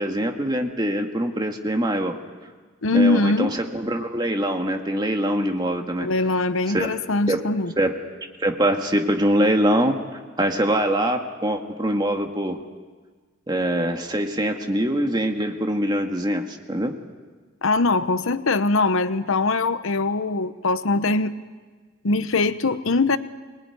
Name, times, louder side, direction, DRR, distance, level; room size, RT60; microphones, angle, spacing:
voice 1, 0.0-2.2 2.9-6.1 6.7-6.9 7.3-7.4 7.8-7.9 8.4-10.0 10.4-12.6 13.5-16.9, right 1 dB, 20° right, 3 dB, 1.8 m, -23 dB
voice 2, 2.8-3.5 6.0-7.7 17.6-21.3 22.0-23.2, left 3 dB, 80° left, 12 dB, 0.9 m, -22 dB
24.5 x 19.5 x 9.8 m, 1.4 s
head